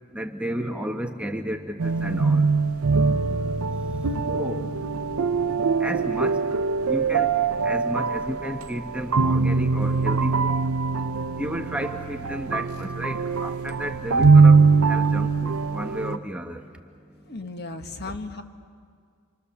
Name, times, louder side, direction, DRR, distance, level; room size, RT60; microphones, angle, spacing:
voice 1, 0.1-2.5 4.3-4.7 5.8-6.4 6.9-7.3 7.6-10.5 11.4-16.7 18.1-18.2, equal, 5° right, 3 dB, 1.1 m, -32 dB
sound 1, 1.8-16.2, right 4 dB, 70° right, 0.6 m, -22 dB
voice 2, 3.1-3.5 4.0-4.1 17.3-18.4, left 2 dB, 50° left, 7 dB, 1.5 m, -35 dB
29.5 x 25.5 x 7.0 m, 2.1 s
head